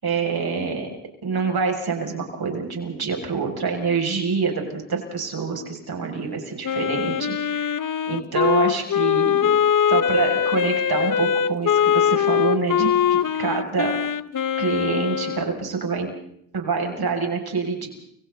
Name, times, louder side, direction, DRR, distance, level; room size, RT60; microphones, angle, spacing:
voice 1, 0.0-0.9 1.2-7.8 8.1-9.6 9.9-14.0 14.6-16.1 16.5-17.9, right 5 dB, 50° right, 2 dB, 6.9 m, -26 dB
Wind instrument woodwind instrument, 6.6-15.5, left 8 dB, 40° left, 1.0 m, -22 dB
30.0 x 24.5 x 4.1 m, 0.70 s
supercardioid pair, 65°, 48 cm